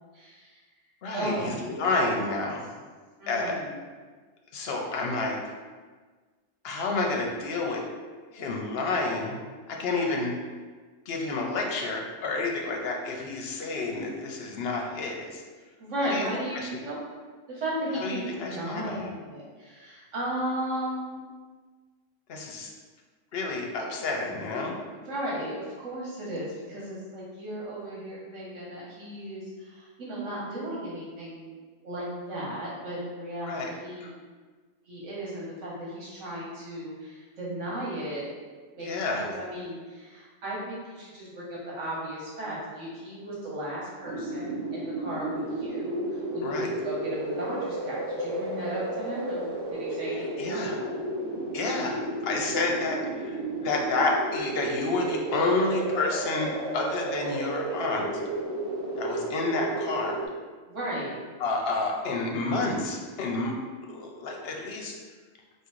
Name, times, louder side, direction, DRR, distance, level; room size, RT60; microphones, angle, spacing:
voice 1, 0.1-0.6 1.1-1.7 3.2-3.8 15.8-17.0 17.5-21.2 24.9-31.5 31.8-34.2 34.9-38.3 38.7-49.5 49.8-50.9 60.7-61.2, right 1 dB, 70° right, -6 dB, 1.4 m, -35 dB
voice 2, 1.0-2.7 3.3-3.6 4.5-5.4 6.6-7.8 8.3-9.4 9.7-10.3 11.1-15.4 16.0-16.3 16.5-16.7 18.0-19.1 22.3-22.7 23.3-24.7 33.5-33.7 34.0-34.1 38.8-39.3 46.4-46.7 50.2-50.8 51.5-58.1 59.0-60.2 61.4-63.5 63.9-65.0, left 3 dB, 60° left, 0 dB, 0.8 m, -29 dB
sound 1, 44.1-60.3, right 2 dB, 5° left, 1.0 m, -33 dB
3.7 x 2.5 x 4.5 m, 1.4 s
omnidirectional pair, 1.3 m